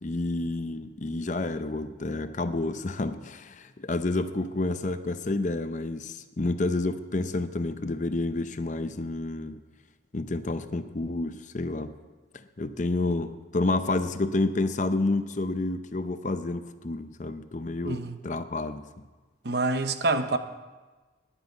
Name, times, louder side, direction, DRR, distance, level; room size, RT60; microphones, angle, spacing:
voice 1, 0.0-9.6 10.1-11.9 12.3-19.0, left 2 dB, 40° left, 11 dB, 0.6 m, -29 dB
voice 2, 17.8-18.2 19.4-20.4, right 2 dB, 55° right, 10 dB, 0.8 m, -26 dB
10.0 x 9.1 x 9.3 m, 1.3 s
head